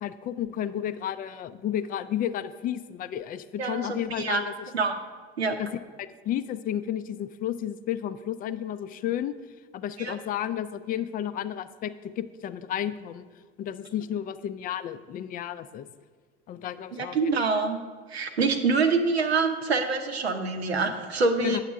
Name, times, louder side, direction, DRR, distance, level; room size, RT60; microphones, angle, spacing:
voice 1, 0.0-4.5 5.6-5.7 6.0-9.3 9.7-13.3 13.6-15.9 16.5-17.6 21.4-21.6, left 10 dB, 30° left, 13 dB, 0.4 m, -32 dB
voice 2, 3.6-4.4 4.7-5.0 5.4-5.6 10.0-10.1 16.9-17.8 18.1-21.6, right 4 dB, 80° right, 6 dB, 0.8 m, -26 dB
9.0 x 7.3 x 3.6 m, 1.5 s
figure-of-eight pair, 70°, 31 cm